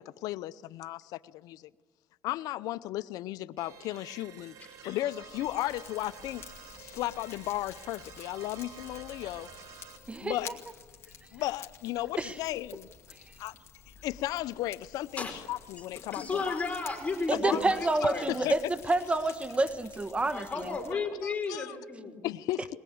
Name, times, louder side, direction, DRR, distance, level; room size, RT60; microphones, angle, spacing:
voice 1, 0.0-1.7 2.2-4.5 4.8-6.4 6.8-9.5 10.2-10.5 11.3-12.9 13.4-13.5 14.0-16.6 17.3-17.4 18.3-18.5 20.9-21.8 22.2-22.7, left 15 dB, 75° left, 0.6 m, -35 dB
sound 1, 3.6-10.0, right 7 dB, 65° right, 2.5 m, -50 dB
Fire, 4.7-20.9, left 7 dB, 45° left, 2.5 m, -51 dB
voice 2, 16.1-18.3 20.3-22.2, left 4 dB, 20° left, 4.9 m, -33 dB
voice 3, 17.3-20.7, right 2 dB, 20° right, 1.2 m, -28 dB
21.5 x 20.5 x 8.7 m
supercardioid pair, 90°, 6 cm